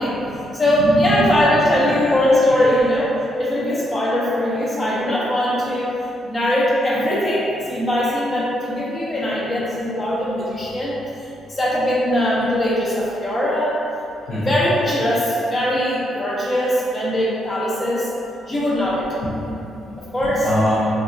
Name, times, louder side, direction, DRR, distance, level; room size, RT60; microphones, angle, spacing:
voice 1, 0.0-3.1 3.4-5.9 6.2-13.8 14.2-18.1 18.5-19.1 20.0-20.5, equal, 35° left, -7 dB, 0.5 m, -21 dB
voice 2, 0.7-1.4 1.9-2.8 14.3-14.6 19.2-20.9, left 1 dB, 90° left, -12 dB, 0.6 m, -25 dB
2.6 x 2.3 x 2.4 m, 2.8 s
cardioid pair, 90°, 0 cm